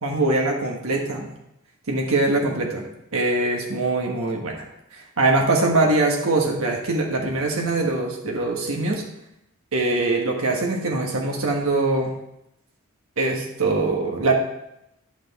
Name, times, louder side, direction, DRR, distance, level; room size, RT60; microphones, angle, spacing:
voice 1, 0.0-1.3 1.9-2.8 3.1-4.6 4.9-9.0 9.7-12.1 13.2-14.3, right 2 dB, 70° right, 0 dB, 1.4 m, -22 dB
11.0 x 5.9 x 4.1 m, 0.84 s
head